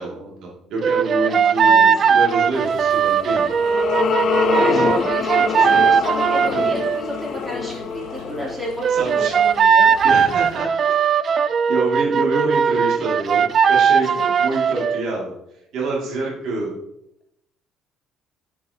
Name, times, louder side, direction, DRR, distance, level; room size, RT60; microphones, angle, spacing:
voice 1, 0.0-3.5 8.9-9.3 10.0-10.7 11.7-15.3 15.7-16.7, right 2 dB, 70° right, -2 dB, 2.2 m, -26 dB
sound 1, 0.8-7.0 8.8-15.0, right 7 dB, 45° right, 0.3 m, -18 dB
voice 2, 1.3-1.9 4.4-9.9 14.1-14.3, equal, 10° right, -4 dB, 2.9 m, -30 dB
sound 2, 2.5-10.6, right 3 dB, 90° right, 2.2 m, -44 dB
sound 3, 3.1-9.6, left 8 dB, 50° left, 0.3 m, -25 dB
7.2 x 7.2 x 2.8 m, 0.82 s
cardioid pair, 100°, 0 cm